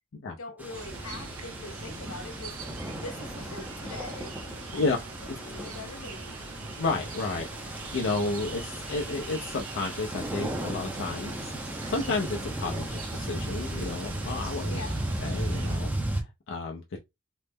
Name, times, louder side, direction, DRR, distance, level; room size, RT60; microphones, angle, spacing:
voice 1, 0.4-2.5 3.0-4.9 5.4-6.5 14.7-15.0, left 3 dB, 80° left, 0.8 m, -43 dB
sound 1, 0.6-16.2, right 1 dB, 10° right, 0.5 m, -36 dB
sound 2, 0.7-15.8, right 3 dB, 80° right, 0.7 m, -42 dB
voice 2, 6.8-11.5 11.9-14.8 15.2-17.0, left 3 dB, 60° left, 0.5 m, -32 dB
3.1 x 2.0 x 3.4 m
head